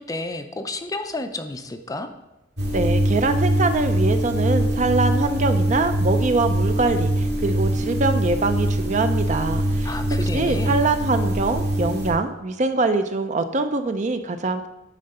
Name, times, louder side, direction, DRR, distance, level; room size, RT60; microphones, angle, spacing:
voice 1, 0.0-2.1 9.8-10.7, left 2 dB, 20° left, 7 dB, 0.5 m, -31 dB
sound 1, 2.6-12.1, right 1 dB, 55° right, 2.0 m, -23 dB
voice 2, 2.7-14.7, right 3 dB, 40° right, 9 dB, 0.5 m, -23 dB
10.0 x 3.9 x 5.5 m, 0.97 s
head